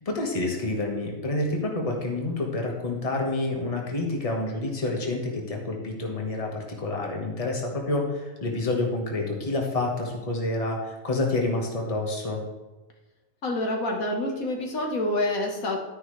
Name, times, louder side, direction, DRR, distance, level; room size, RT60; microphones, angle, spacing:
voice 1, 0.0-12.4, left 2 dB, 25° left, 0 dB, 1.6 m, -28 dB
voice 2, 13.4-15.8, left 1 dB, 85° left, 1 dB, 1.9 m, -27 dB
12.0 x 9.8 x 3.3 m, 1.1 s
omnidirectional pair, 1.4 m